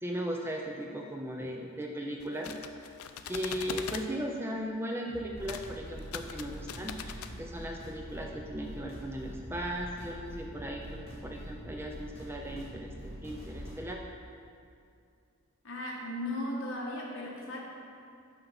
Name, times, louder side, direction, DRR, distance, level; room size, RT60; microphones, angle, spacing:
voice 1, 0.0-2.5 3.3-14.0, equal, 10° right, 1 dB, 0.4 m, -37 dB
sound 1, 2.2-4.1 5.4-5.7 6.0-7.3, left 7 dB, 75° left, 0.4 m, -41 dB
sound 2, 5.1-13.8, equal, 25° left, 1.9 m, -44 dB
voice 2, 15.6-17.6, left 1 dB, 60° left, -3 dB, 1.5 m, -36 dB
6.7 x 5.8 x 5.6 m, 2.4 s
head